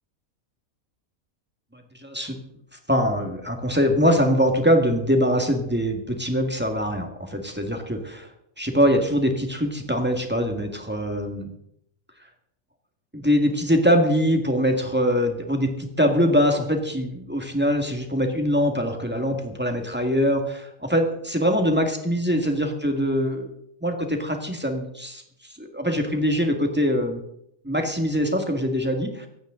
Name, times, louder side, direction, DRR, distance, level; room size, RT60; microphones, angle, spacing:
voice 1, 1.7-2.4 2.9-8.3 8.6-11.5 13.1-23.5 23.8-25.2 25.6-27.2 27.6-29.3, equal, 10° right, 3 dB, 1.8 m, -23 dB
24.5 x 9.0 x 3.9 m, 0.75 s
omnidirectional pair, 1.4 m